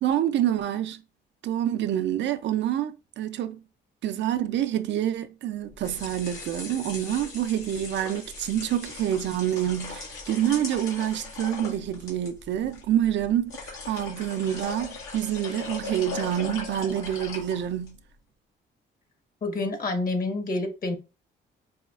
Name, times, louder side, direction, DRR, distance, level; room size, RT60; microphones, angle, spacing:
voice 1, 0.0-1.0 1.4-3.6 4.0-18.0, right 11 dB, 65° right, 0.4 m, -27 dB
sound 1, 5.6-18.0, left 3 dB, 90° left, 1.6 m, -39 dB
voice 2, 19.4-21.0, left 2 dB, 45° left, 1.1 m, -28 dB
4.8 x 2.3 x 2.4 m
cardioid pair, 90°, 20 cm